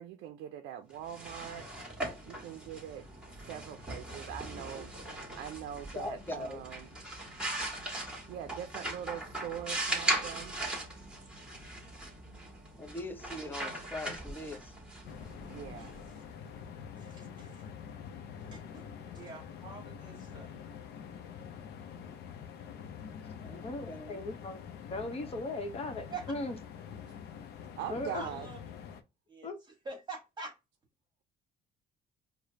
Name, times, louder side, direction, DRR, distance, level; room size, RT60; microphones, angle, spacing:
voice 1, 0.0-1.7 2.3-3.1 3.5-4.9 5.4-6.9 8.3-10.5 15.5-15.9 27.8-28.5, right 10 dB, 80° right, 0.4 m, -42 dB
sound 1, 0.9-16.6, right 1 dB, 5° right, 1.5 m, -39 dB
voice 2, 5.9-6.6 12.8-14.7 23.4-24.2, left 2 dB, 10° left, 0.6 m, -41 dB
sound 2, 15.0-29.0, left 7 dB, 75° left, 0.6 m, -46 dB
voice 3, 15.8-16.1 17.0-17.7 18.4-18.8 19.1-20.6 26.1-26.2 28.1-28.6 29.3-29.5 29.8-30.5, right 3 dB, 25° right, 1.4 m, -45 dB
voice 4, 23.6-24.6 24.9-26.6 27.9-28.2 29.4-29.6, left 2 dB, 35° left, 0.9 m, -37 dB
4.8 x 2.1 x 2.8 m
cardioid pair, 110°, 17 cm